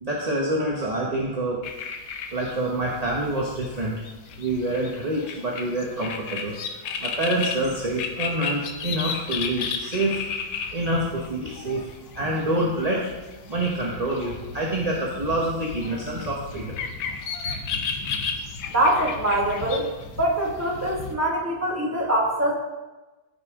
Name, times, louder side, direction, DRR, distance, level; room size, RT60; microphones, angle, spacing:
voice 1, 0.0-1.6 2.3-4.0 4.4-10.4 10.7-13.0 13.5-16.8, right 1 dB, 25° right, -3 dB, 0.9 m, -27 dB
sound 1, 1.6-21.1, left 5 dB, 70° left, 1.6 m, -34 dB
voice 2, 18.7-19.9 20.2-22.5, right 1 dB, 10° right, -3 dB, 1.7 m, -23 dB
14.5 x 6.6 x 3.7 m, 1.1 s
omnidirectional pair, 2.2 m